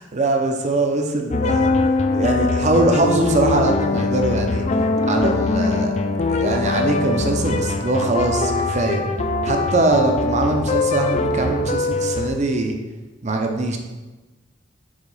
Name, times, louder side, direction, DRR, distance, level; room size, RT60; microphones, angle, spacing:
voice 1, 0.0-1.7 2.1-4.7 5.0-5.9 6.3-9.0 9.4-12.8 13.2-13.8, right 2 dB, 35° right, 4 dB, 0.6 m, -22 dB
sound 1, 1.3-12.3, left 3 dB, 35° left, 0.3 m, -22 dB
5.0 x 3.6 x 5.4 m, 1.2 s
head